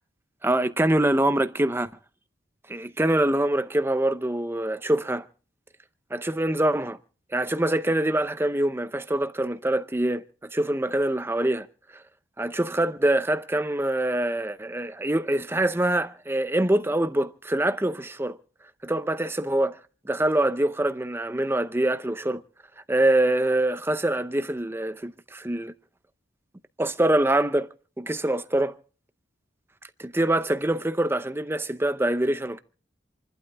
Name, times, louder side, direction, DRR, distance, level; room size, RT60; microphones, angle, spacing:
voice 1, 0.4-1.9 2.7-5.2 6.1-7.0 7.3-10.2 10.5-11.7 12.4-18.4 18.8-19.8 20.0-22.4 22.9-25.7 26.8-27.7 28.0-28.8 30.0-32.6, right 1 dB, 10° right, 0.7 m, -24 dB
28.0 x 12.0 x 3.5 m
head